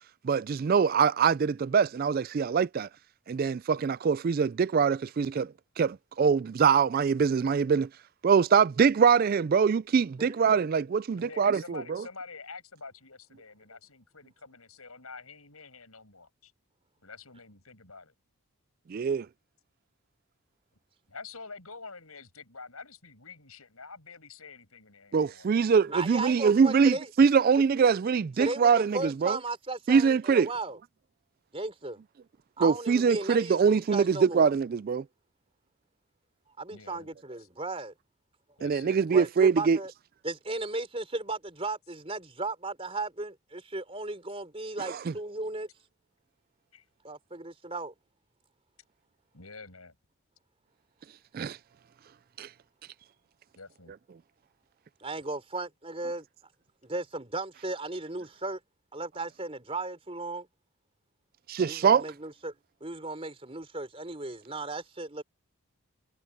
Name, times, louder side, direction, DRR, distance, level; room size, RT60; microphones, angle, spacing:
voice 1, 0.2-2.9 3.3-7.9 8.2-12.0 18.9-19.3 25.1-29.4 29.9-30.5 32.6-35.0 38.6-39.8 44.8-45.1 51.3-51.6 52.4-52.5 61.5-62.0, right 6 dB, 40° right, 0.3 m, -24 dB
voice 2, 11.1-16.5 17.0-18.1 21.1-25.7 36.7-37.5 38.6-39.0 46.7-46.8 49.3-49.9 53.6-53.9, left 4 dB, 75° left, 7.2 m, -47 dB
voice 3, 25.9-27.1 28.4-30.8 31.5-32.0 32.6-34.5 36.6-37.9 39.1-39.9 40.2-45.7 47.0-47.9 55.0-56.3 56.8-58.6 58.9-60.5 61.6-62.5 62.8-65.2, right 2 dB, 25° right, 3.8 m, -35 dB
head